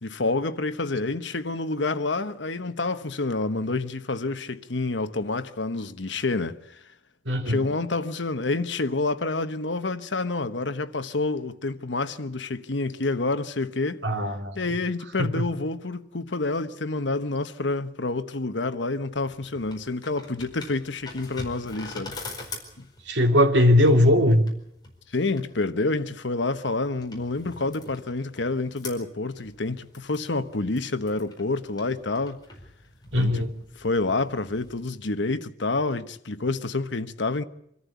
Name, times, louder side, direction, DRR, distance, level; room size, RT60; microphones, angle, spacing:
voice 1, 0.0-6.8 7.5-14.0 14.5-22.1 25.1-32.4 33.1-33.4 33.8-37.4, left 3 dB, 80° left, 1.2 m, -28 dB
voice 2, 7.3-7.7 14.0-14.5 15.2-15.4 23.1-24.4 33.1-33.5, left 1 dB, 80° right, 2.8 m, -20 dB
sound 1, 19.1-34.8, left 2 dB, 25° left, 4.7 m, -44 dB
26.0 x 14.0 x 8.3 m
head